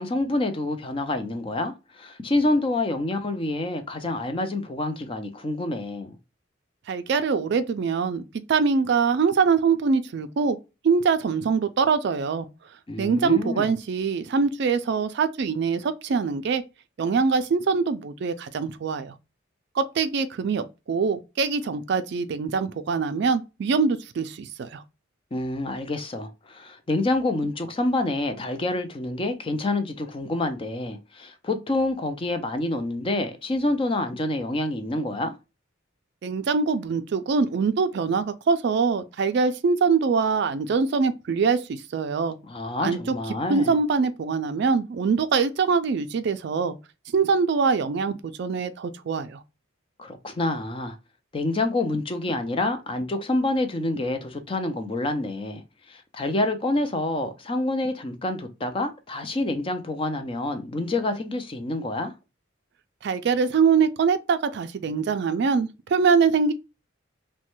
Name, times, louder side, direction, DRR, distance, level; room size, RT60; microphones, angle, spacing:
voice 1, 0.0-6.2 12.9-13.7 25.3-35.3 42.5-43.7 50.0-51.0 51.3-55.6 55.9-62.1, left 2 dB, 25° left, 0.4 m, -27 dB
voice 2, 6.9-8.2 8.5-10.6 10.8-12.5 13.0-16.6 17.0-19.1 19.8-24.8 36.2-42.4 42.8-43.1 43.5-46.8 47.1-49.4 63.0-66.5, right 5 dB, 55° right, 0.3 m, -23 dB
3.1 x 2.2 x 2.9 m
head